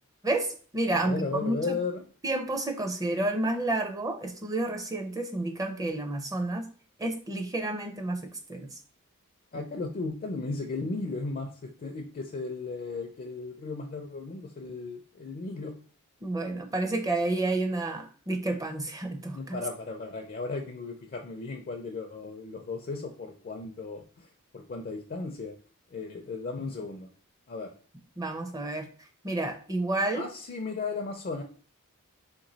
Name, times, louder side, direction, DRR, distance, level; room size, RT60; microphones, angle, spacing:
voice 1, 0.2-1.8 2.2-6.7 7.0-8.2 8.5-8.7 16.2-19.6 28.2-28.9 29.2-30.3, right 2 dB, 15° right, 5 dB, 0.5 m, -30 dB
voice 2, 0.9-2.0 9.5-15.7 19.3-24.3 24.5-25.5 25.9-27.1 27.5-27.7 30.1-31.4, left 3 dB, 40° left, 4 dB, 0.4 m, -35 dB
3.3 x 3.0 x 3.9 m, 0.42 s
head